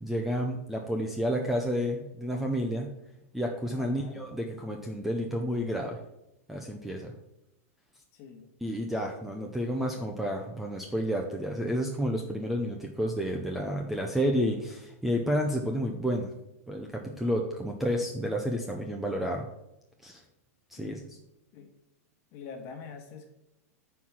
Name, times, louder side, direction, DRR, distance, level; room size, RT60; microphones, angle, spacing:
voice 1, 0.0-2.9 3.3-6.0 6.5-7.1 8.6-16.3 16.7-19.5 20.0-20.2 20.7-21.0, equal, ahead, 1 dB, 0.5 m, -30 dB
voice 2, 3.7-4.2 8.1-8.5 20.8-21.0 21.5-21.7 22.3-23.3, left 6 dB, 30° left, 4 dB, 1.5 m, -45 dB
9.6 x 4.7 x 7.3 m, 0.87 s
supercardioid pair, 175°, 8 cm